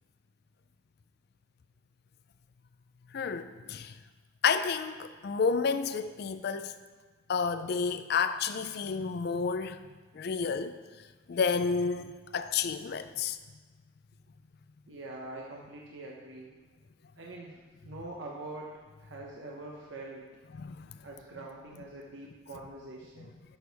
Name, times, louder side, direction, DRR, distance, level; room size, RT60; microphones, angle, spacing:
voice 1, 3.1-3.9 4.4-6.8 7.3-9.8 10.1-10.7 11.3-13.4 20.5-21.0, left 5 dB, 55° left, 0.4 m, -30 dB
voice 2, 14.9-16.5 17.2-17.6 17.8-18.7 19.0-20.2 21.0-23.4, right 2 dB, 70° right, 0.9 m, -44 dB
11.5 x 6.2 x 3.4 m
head